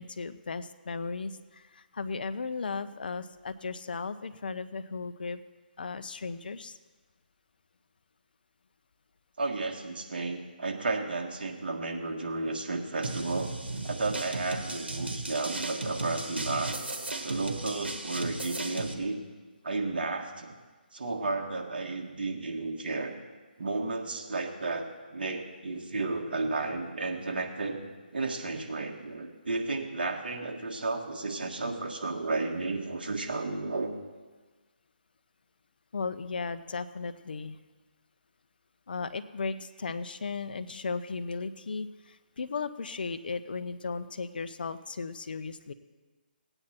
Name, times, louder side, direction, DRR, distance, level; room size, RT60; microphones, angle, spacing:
voice 1, 0.0-5.4 5.8-6.8 35.9-37.6 38.9-45.7, left 4 dB, 65° left, 11 dB, 0.7 m, -36 dB
voice 2, 9.4-13.5 13.8-16.8 17.2-19.2 19.6-20.6 20.9-23.1 23.6-27.8 28.1-33.9, right 3 dB, 65° right, 2 dB, 1.7 m, -33 dB
sound 1, 13.0-18.9, right 2 dB, 90° right, 1.5 m, -36 dB
17.5 x 8.9 x 4.4 m, 1.3 s
hypercardioid pair, 155°, 5 cm